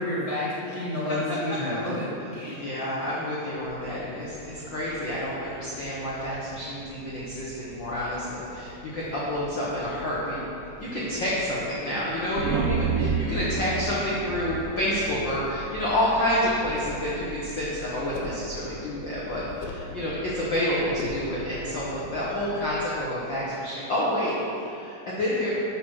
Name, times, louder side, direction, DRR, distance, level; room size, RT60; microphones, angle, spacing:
voice 1, 0.0-2.1 2.3-2.6, left 1 dB, 15° right, -10 dB, 1.6 m, -29 dB
voice 2, 2.5-10.4 10.8-25.5, left 1 dB, 70° left, -7 dB, 1.1 m, -29 dB
sound 1, 3.5-22.6, right 1 dB, 65° right, 2.1 m, -45 dB
sound 2, 12.4-16.0, right 5 dB, 80° right, 2.0 m, -29 dB
sound 3, 16.6-17.1 18.1-18.5 19.5-19.9 21.0-21.3, left 3 dB, 90° left, 2.7 m, -38 dB
12.0 x 4.3 x 6.2 m, 2.8 s
omnidirectional pair, 4.1 m